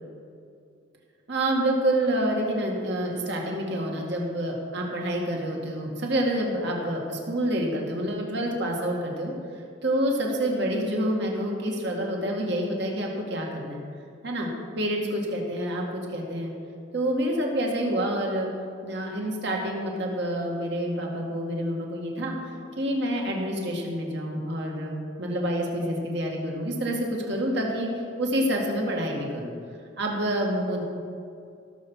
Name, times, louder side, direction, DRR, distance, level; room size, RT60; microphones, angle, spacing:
voice 1, 1.3-9.3 9.8-13.8 14.2-14.5 14.8-16.5 16.9-18.5 18.8-22.3 22.8-29.5 30.0-30.8, right 1 dB, 60° right, 0 dB, 2.1 m, -28 dB
17.0 x 7.2 x 5.6 m, 2.4 s
head